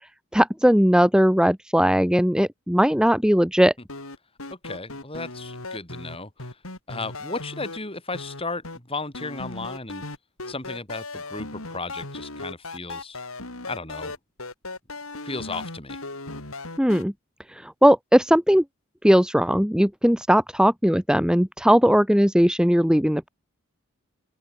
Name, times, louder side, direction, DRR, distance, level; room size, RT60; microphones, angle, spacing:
voice 1, 0.3-3.7 16.8-17.1 17.5-18.6 19.0-23.3, equal, 5° right, 1.5 m, -19 dB
sound 1, 3.9-7.8 8.1-8.8 9.1-17.0, left 2 dB, 75° left, 4.6 m, -37 dB
voice 2, 4.5-6.6 6.9-10.0 10.5-13.2 13.7-14.2 15.2-16.0, left 3 dB, 25° left, 6.3 m, -35 dB
open air
head